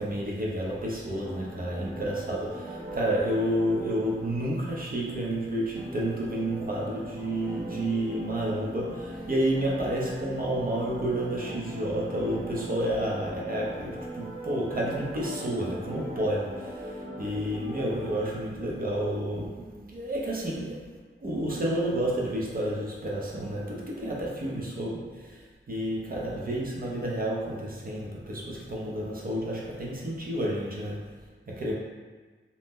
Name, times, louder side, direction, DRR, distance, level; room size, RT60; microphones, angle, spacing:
voice 1, 0.0-31.7, right 1 dB, 45° right, -4 dB, 0.6 m, -30 dB
sound 1, 0.7-18.2, equal, 80° right, 0.9 m, -41 dB
2.7 x 2.0 x 3.5 m, 1.4 s
wide cardioid pair, 70°, 21 cm